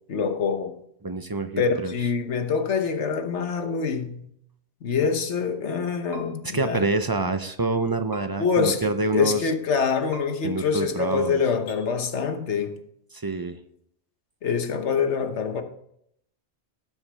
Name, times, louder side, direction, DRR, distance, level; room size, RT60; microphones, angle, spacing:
voice 1, 0.1-0.8 1.6-4.3 4.8-6.8 8.4-12.8 14.4-15.6, left 5 dB, 75° left, 1.3 m, -25 dB
voice 2, 1.0-1.9 6.5-9.5 10.4-11.4 13.1-13.6, right 2 dB, 30° right, 0.4 m, -26 dB
sound 1, 6.1-6.2 8.1-8.2 10.1-10.2 11.6-11.8, equal, 40° left, 3.6 m, -40 dB
17.5 x 7.1 x 3.3 m
omnidirectional pair, 1.2 m